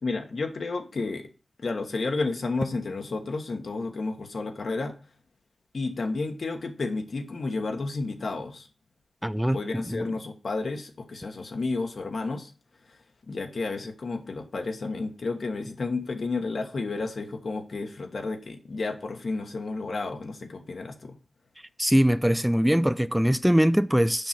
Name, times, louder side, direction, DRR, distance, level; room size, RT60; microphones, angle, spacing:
voice 1, 0.0-1.3 1.6-5.0 5.7-8.7 9.5-12.5 12.9-13.0 13.3-21.2, left 3 dB, 75° left, 1.3 m, -31 dB
voice 2, 9.2-10.0 21.8-24.3, equal, 5° right, 0.3 m, -22 dB
6.9 x 5.6 x 5.8 m
wide cardioid pair, 80°, 0 cm